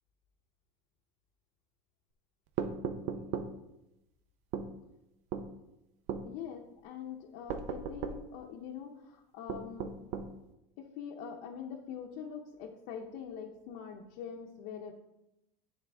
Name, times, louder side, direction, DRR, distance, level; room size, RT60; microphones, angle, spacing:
sound 1, 2.6-3.5 4.5-4.7 5.3-5.5 6.1-6.3 7.5-8.2 9.5-10.3, right 6 dB, 50° right, 0.6 m, -36 dB
voice 1, 6.2-9.9 10.8-14.9, left 7 dB, 65° left, 0 dB, 0.8 m, -44 dB
9.3 x 3.9 x 3.5 m, 0.91 s
supercardioid pair, 135°, 15 cm